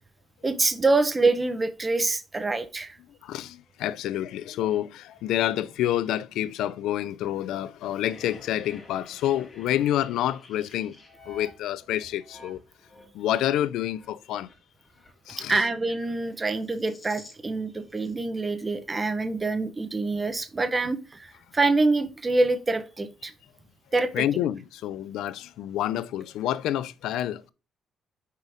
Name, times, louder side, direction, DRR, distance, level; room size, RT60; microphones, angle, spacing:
voice 1, 0.4-3.0 15.4-23.3 23.9-24.3, right 3 dB, 25° right, 0.9 m, -25 dB
voice 2, 3.2-11.0 11.3-12.6 13.1-14.5 15.3-15.6 24.1-27.5, left 12 dB, 90° left, 0.4 m, -28 dB
sound 1, 8.0-17.6 17.8-18.1, left 2 dB, 30° left, 3.3 m, -51 dB
6.4 x 5.2 x 3.5 m
cardioid pair, 90°, 0 cm